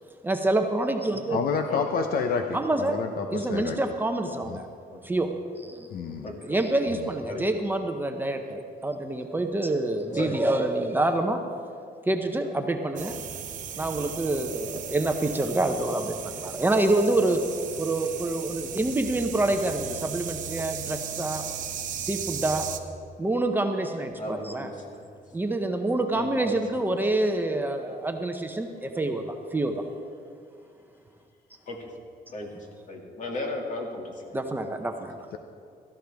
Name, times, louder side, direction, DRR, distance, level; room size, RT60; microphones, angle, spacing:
voice 1, 0.2-1.4 2.5-3.0 3.3-4.7 5.0-5.3 5.6-5.9 6.4-11.4 12.1-13.2 13.8-17.4 17.8-21.4 22.0-22.7 23.2-24.7 25.3-29.7 34.3-35.2, right 2 dB, 10° right, 4 dB, 0.7 m, -27 dB
voice 2, 1.3-3.8 4.5-4.6 5.9-6.4, left 5 dB, 70° left, 6 dB, 0.7 m, -29 dB
voice 3, 4.6-5.0 6.2-6.6 7.3-7.4 10.1-10.4 24.2-25.1 26.1-27.0 31.7-31.9 32.3-32.5 32.9-34.5, left 2 dB, 50° left, 0 dB, 2.2 m, -36 dB
sound 1, 13.0-22.8, right 8 dB, 55° right, 0.8 m, -36 dB
17.0 x 14.0 x 3.5 m, 2.3 s
cardioid pair, 160°, 16 cm